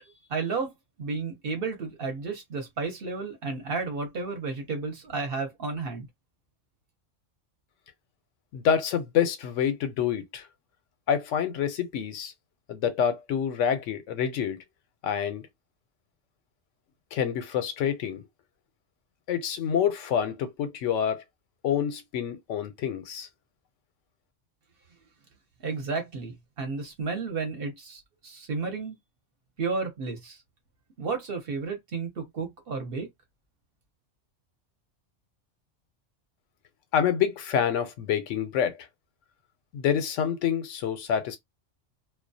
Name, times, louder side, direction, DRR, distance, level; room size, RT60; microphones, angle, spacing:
voice 1, 0.3-0.7 1.0-6.1 25.6-29.0 29.6-30.4 31.0-33.1, right 4 dB, 55° right, 0.9 m, -32 dB
voice 2, 8.5-10.5 11.1-12.3 12.7-14.6 15.0-15.4 17.1-18.2 19.3-21.2 21.6-23.3 36.9-38.9 39.7-41.4, left 8 dB, 85° left, 0.9 m, -27 dB
2.3 x 2.1 x 2.6 m
omnidirectional pair, 1.3 m